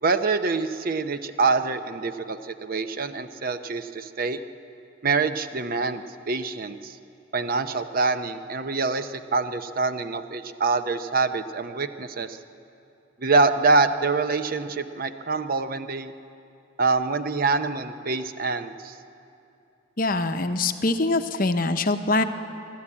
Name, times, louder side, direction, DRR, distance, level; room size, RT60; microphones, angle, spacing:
voice 1, 0.0-4.4 5.0-7.0 7.3-12.4 13.2-16.1 16.8-19.0, right 4 dB, 45° right, 10 dB, 0.7 m, -25 dB
voice 2, 20.0-22.2, left 2 dB, 40° left, 8 dB, 0.8 m, -23 dB
23.0 x 13.5 x 8.6 m, 2.7 s
head